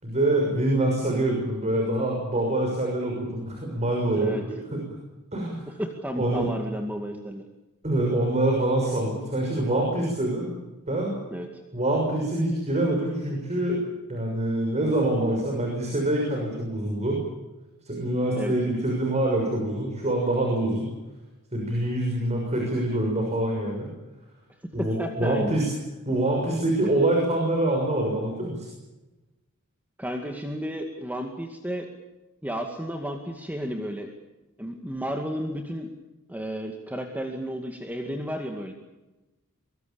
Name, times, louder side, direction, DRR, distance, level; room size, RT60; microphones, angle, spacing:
voice 1, 0.0-4.4 4.7-4.8 5.3-5.7 6.2-6.5 7.8-10.5 10.9-11.1 11.7-13.8 14.1-17.2 17.8-20.9 21.5-23.9 24.7-25.7 26.0-28.7, right 1 dB, 30° right, 0 dB, 6.5 m, -25 dB
voice 2, 5.8-7.4 11.3-11.5 18.3-18.5 24.8-25.6 30.0-31.9 32.4-34.1 34.6-35.9 36.3-38.7, equal, 10° right, 3 dB, 2.3 m, -32 dB
24.5 x 23.5 x 7.1 m, 1.1 s
head